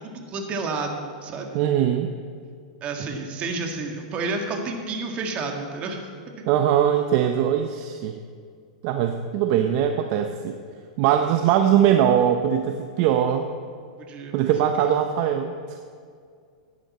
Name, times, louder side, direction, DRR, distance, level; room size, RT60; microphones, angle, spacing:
voice 1, 0.0-1.6 2.8-6.1 6.4-6.5 11.3-11.4 14.0-14.9, right 3 dB, 30° right, 3 dB, 1.8 m, -31 dB
voice 2, 1.5-2.1 6.5-8.2 8.8-10.6 11.0-13.5 14.3-15.8, right 9 dB, 50° right, 6 dB, 0.7 m, -21 dB
15.0 x 10.5 x 4.3 m, 2.2 s
hypercardioid pair, 135°, 4 cm